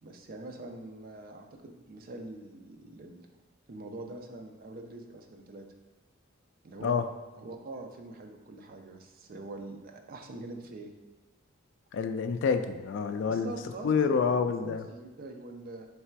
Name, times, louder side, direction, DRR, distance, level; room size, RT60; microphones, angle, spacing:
voice 1, 0.0-3.3 3.7-5.6 6.6-7.0 7.4-10.9 13.3-15.9, right 2 dB, 45° right, 4 dB, 0.5 m, -44 dB
voice 2, 11.9-13.5 13.8-14.8, left 5 dB, 65° left, 9 dB, 0.3 m, -27 dB
3.4 x 3.3 x 4.5 m, 1.1 s
head